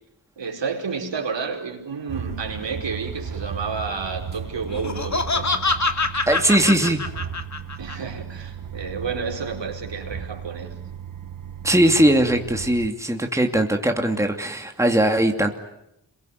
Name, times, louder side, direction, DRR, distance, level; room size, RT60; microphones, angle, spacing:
voice 1, 0.4-5.5 7.8-10.7, right 5 dB, 70° right, 2 dB, 5.1 m, -30 dB
sound 1, 2.1-12.9, right 7 dB, 45° right, 1.3 m, -35 dB
Laughter, 4.7-8.0, left 3 dB, 40° left, 2.4 m, -25 dB
voice 2, 6.3-7.0 11.6-15.5, right 1 dB, 5° right, 4 dB, 2.7 m, -20 dB
27.5 x 22.5 x 9.5 m, 0.84 s
cardioid pair, 60°, 45 cm